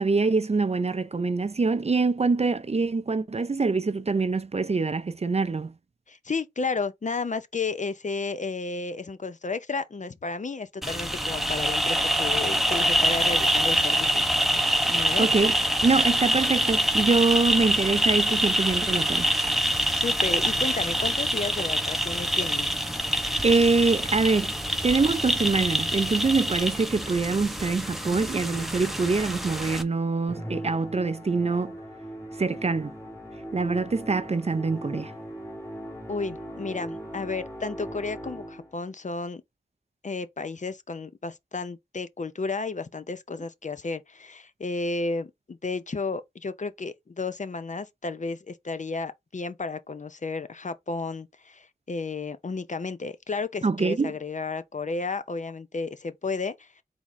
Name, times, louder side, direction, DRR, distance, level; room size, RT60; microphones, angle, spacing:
voice 1, 0.0-5.7 15.2-15.5 15.8-19.3 23.4-24.5 24.8-31.7 32.4-33.0 33.5-35.1 53.6-54.1, right 4 dB, 35° right, 0.5 m, -24 dB
voice 2, 6.1-14.6 14.9-15.3 19.9-22.7 36.1-39.4 40.0-56.8, left 3 dB, 45° left, 0.5 m, -32 dB
sound 1, 10.8-29.8, equal, ahead, 0.8 m, -25 dB
Musical instrument, 30.3-38.8, right 1 dB, 15° left, 1.6 m, -39 dB
4.0 x 3.5 x 3.0 m
wide cardioid pair, 55°, 18 cm